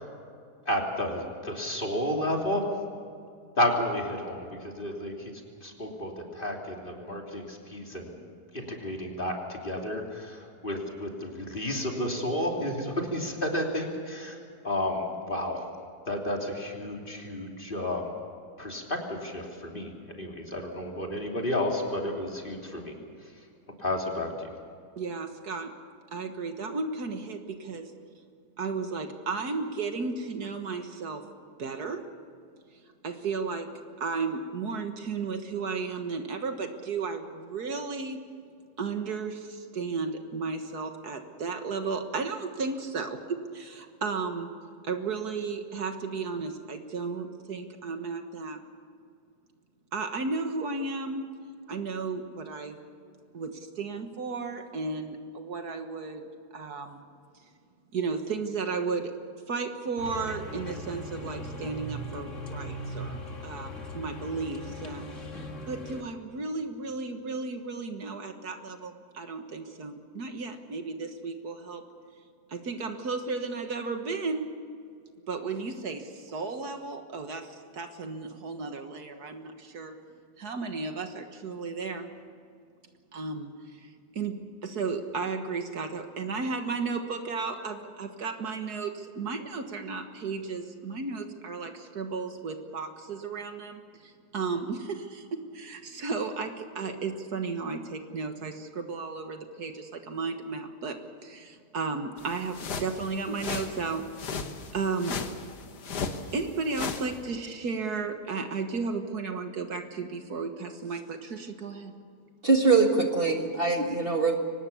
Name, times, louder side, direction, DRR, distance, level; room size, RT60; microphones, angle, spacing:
voice 1, 0.6-2.7 3.6-5.3 5.6-8.1 8.5-14.4 14.6-15.6 16.1-18.1 18.6-23.0 23.8-24.5, left 1 dB, 30° left, 0 dB, 3.2 m, -31 dB
voice 2, 25.0-25.7 26.1-27.9 28.6-31.2 31.6-32.0 32.7-33.7 34.0-38.2 38.8-44.5 44.8-48.6 49.9-51.2 51.7-52.8 53.3-57.1 57.3-57.5 57.9-59.2 59.5-63.2 63.4-65.1 65.7-71.8 72.5-74.5 75.3-80.0 80.4-82.1 83.1-104.4 104.7-105.2 106.3-111.9, right 4 dB, 70° right, 6 dB, 2.0 m, -34 dB
sound 1, 60.0-66.0, equal, 45° left, 2.4 m, -39 dB
sound 2, 102.2-107.1, left 5 dB, 75° left, 2.0 m, -36 dB
voice 3, 112.4-114.4, right 4 dB, 35° right, 3 dB, 1.9 m, -23 dB
24.0 x 19.0 x 7.1 m, 2.4 s
omnidirectional pair, 1.8 m